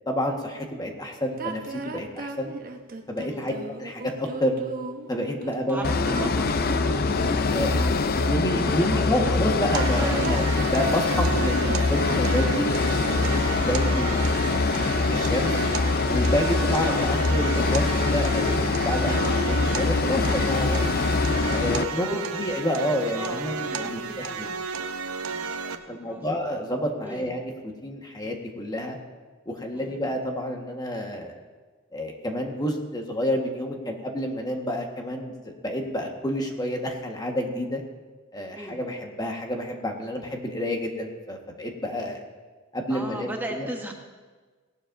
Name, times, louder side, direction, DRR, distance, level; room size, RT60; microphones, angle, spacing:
voice 1, 0.1-2.5 3.1-3.5 3.8-4.6 5.1-5.8 6.1-6.3 7.5-14.7 15.1-15.5 16.1-20.9 21.5-24.5 25.5-27.5 27.8-29.0 29.4-31.3 31.9-37.8 38.3-42.2 42.7-43.7, left 1 dB, 20° left, 2 dB, 1.4 m, -29 dB
sound 1, 1.4-8.9 9.6-13.6, right 3 dB, 45° right, 1.0 m, -36 dB
voice 2, 5.7-6.8 8.6-9.4 10.0-10.3 16.5-16.8 21.9-22.4 23.2-24.7 25.2-25.5 25.8-26.3 27.0-27.3 29.7-30.0 38.6-38.8 42.9-43.9, right 1 dB, 10° right, 2 dB, 0.9 m, -37 dB
sound 2, 5.8-21.8, left 3 dB, 45° left, 0.5 m, -24 dB
sound 3, 9.7-25.8, right 5 dB, 75° right, 0.7 m, -33 dB
18.0 x 12.0 x 2.6 m, 1.4 s
head